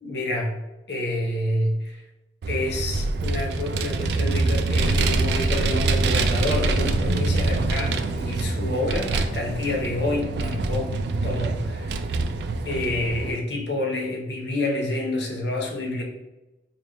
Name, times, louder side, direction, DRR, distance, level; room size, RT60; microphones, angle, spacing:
voice 1, 0.0-0.6 0.9-2.0 2.5-10.9 11.2-11.9 12.6-16.0, left 1 dB, 80° left, 0 dB, 0.8 m, -28 dB
Vehicle, 2.4-13.3, right 3 dB, 70° right, 0.3 m, -25 dB
4.0 x 2.4 x 3.4 m, 1.0 s
head